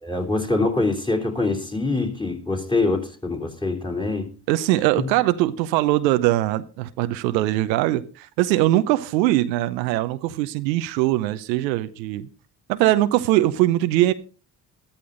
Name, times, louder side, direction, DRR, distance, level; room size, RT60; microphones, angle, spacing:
voice 1, 0.0-4.3 5.0-5.1, left 3 dB, 10° left, 3.3 m, -24 dB
voice 2, 4.5-12.3 12.7-14.1, right 15 dB, 85° right, 0.8 m, -21 dB
13.5 x 13.0 x 3.8 m
hypercardioid pair, 45°, 50 cm